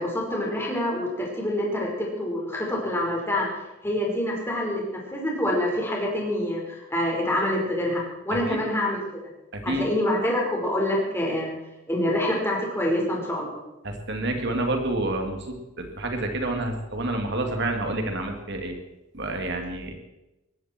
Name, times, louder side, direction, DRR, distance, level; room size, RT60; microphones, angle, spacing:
voice 1, 0.0-3.5 3.8-9.0 9.6-11.6 11.9-13.6, left 1 dB, 10° left, -2 dB, 5.1 m, -26 dB
voice 2, 9.5-9.9 13.8-18.8 19.1-19.9, right 2 dB, 60° right, 4 dB, 2.9 m, -28 dB
20.0 x 15.5 x 4.7 m, 0.96 s
head